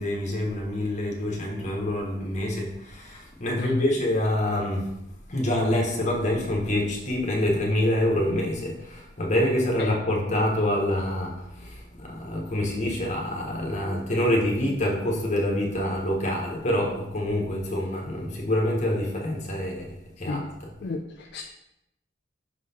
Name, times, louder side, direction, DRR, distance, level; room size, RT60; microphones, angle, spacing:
voice 1, 0.0-5.0 5.3-20.7, left 1 dB, 35° left, 0 dB, 1.1 m, -26 dB
voice 2, 20.8-21.4, left 3 dB, 55° left, 3 dB, 0.4 m, -31 dB
5.9 x 3.9 x 4.2 m, 0.86 s
head